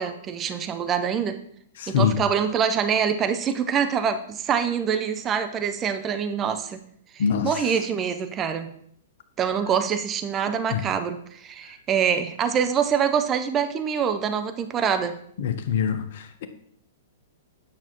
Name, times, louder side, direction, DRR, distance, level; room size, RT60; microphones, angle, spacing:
voice 1, 0.0-1.4 1.9-6.8 7.1-8.7 9.4-15.1, right 7 dB, 25° right, 0.6 m, -25 dB
voice 2, 1.8-2.2 7.2-7.5 10.7-10.8 15.4-16.5, left 7 dB, 55° left, 0.7 m, -24 dB
8.8 x 5.9 x 3.0 m
figure-of-eight pair, 105°, 0 cm